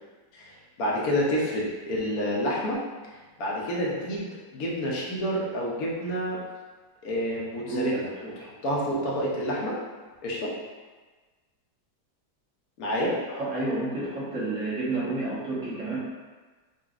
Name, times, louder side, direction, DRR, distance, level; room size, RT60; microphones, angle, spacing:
voice 1, 0.3-2.8 3.1-6.4 7.0-9.8 10.2-10.5 12.8-13.2, equal, 65° left, -5 dB, 1.1 m, -29 dB
voice 2, 7.6-8.3 13.3-16.0, right 2 dB, 50° right, -9 dB, 1.3 m, -30 dB
3.8 x 2.4 x 2.4 m, 1.3 s
omnidirectional pair, 1.9 m